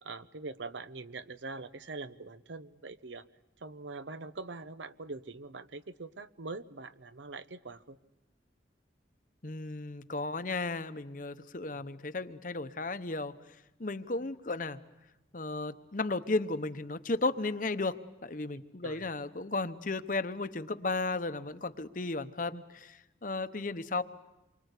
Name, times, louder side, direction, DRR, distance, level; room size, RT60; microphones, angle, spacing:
voice 1, 0.0-3.3 3.6-8.0 11.7-11.9 18.8-19.1, right 3 dB, 75° right, 13 dB, 0.9 m, -43 dB
voice 2, 9.4-13.4 13.8-14.8 15.3-24.0, left 3 dB, 45° left, 11 dB, 0.9 m, -34 dB
27.5 x 24.0 x 8.3 m, 1.0 s
head